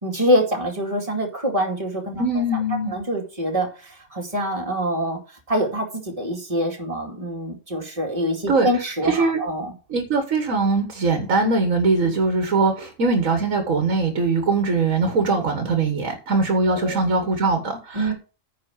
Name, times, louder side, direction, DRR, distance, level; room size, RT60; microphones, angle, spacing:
voice 1, 0.0-2.2 2.9-5.2 5.5-9.7 16.7-17.0 17.9-18.1, equal, 25° right, 0 dB, 2.4 m, -25 dB
voice 2, 2.2-2.9 8.5-8.7 9.0-9.4 9.9-18.1, right 3 dB, 85° right, 5 dB, 1.9 m, -21 dB
9.6 x 4.3 x 7.2 m, 0.35 s
omnidirectional pair, 1.4 m